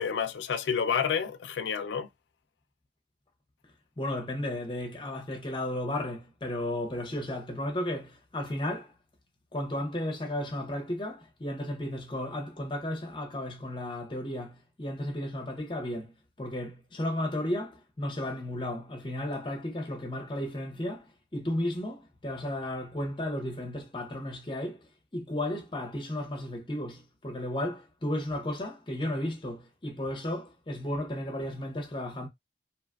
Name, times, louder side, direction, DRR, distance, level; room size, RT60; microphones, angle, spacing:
voice 1, 0.0-2.1, left 7 dB, 75° left, 0.4 m, -29 dB
voice 2, 4.0-8.9 9.5-32.3, left 1 dB, 25° left, 0.6 m, -34 dB
2.8 x 2.4 x 2.3 m
head